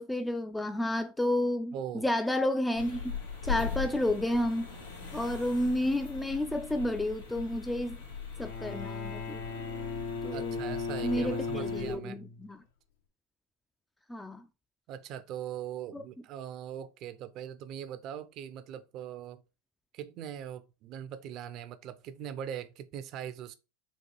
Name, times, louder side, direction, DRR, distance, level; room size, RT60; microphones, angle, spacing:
voice 1, 0.0-3.1 3.4-4.7 5.1-8.0 8.4-9.4 10.2-10.7 11.0-12.6 14.1-14.4 15.9-16.0, left 1 dB, 5° left, 0.3 m, -31 dB
voice 2, 1.7-2.1 10.3-12.2 14.9-19.4 19.9-23.5, right 9 dB, 50° right, 0.5 m, -41 dB
sound 1, 2.8-11.9, left 6 dB, 90° left, 1.4 m, -40 dB
Bowed string instrument, 8.4-12.5, left 4 dB, 70° left, 0.8 m, -37 dB
4.2 x 2.4 x 4.5 m
hypercardioid pair, 90°, 0 cm